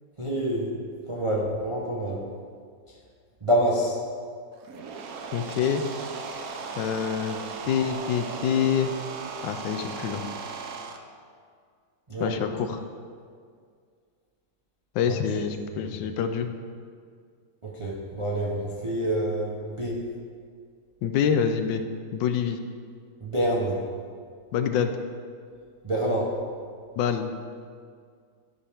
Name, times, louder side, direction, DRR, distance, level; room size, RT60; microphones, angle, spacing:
voice 1, 0.2-0.7 1.1-2.3 3.4-4.0 12.1-12.4 15.0-15.1 15.7-16.0 17.6-20.0 23.2-23.8 25.8-26.4, right 1 dB, 35° right, -4 dB, 0.5 m, -27 dB
sound 1, 4.5-11.0, right 5 dB, 65° right, 0.9 m, -37 dB
voice 2, 5.3-5.8 6.8-8.9 9.4-10.2 12.2-12.8 14.9-16.5 21.0-21.8 22.1-22.6 24.5-24.9 27.0-27.3, left 8 dB, 80° left, 7 dB, 1.3 m, -26 dB
12.5 x 5.6 x 3.5 m, 2.1 s
omnidirectional pair, 2.0 m